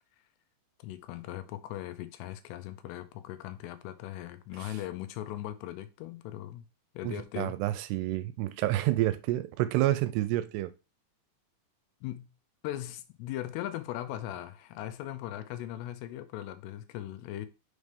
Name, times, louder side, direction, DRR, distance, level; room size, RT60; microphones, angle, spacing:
voice 1, 0.8-6.7 6.9-7.6 12.0-12.3 12.6-17.5, left 13 dB, 85° left, 2.6 m, -39 dB
voice 2, 7.0-10.7, right 15 dB, 85° right, 2.6 m, -29 dB
6.3 x 3.2 x 5.2 m
omnidirectional pair, 4.9 m